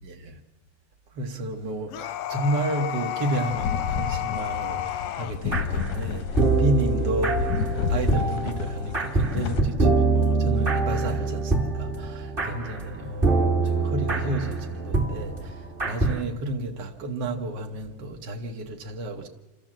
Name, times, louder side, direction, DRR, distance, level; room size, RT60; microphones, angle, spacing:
voice 1, 0.0-0.4 1.1-19.3, right 1 dB, 70° right, 1.0 m, -31 dB
sound 1, 1.9-5.4, left 12 dB, 90° left, 2.6 m, -31 dB
sound 2, 3.4-9.6, left 7 dB, 75° left, 1.8 m, -30 dB
sound 3, 5.5-6.1 6.4-16.2, right 3 dB, 25° right, 1.3 m, -25 dB
27.0 x 13.5 x 7.5 m
omnidirectional pair, 3.9 m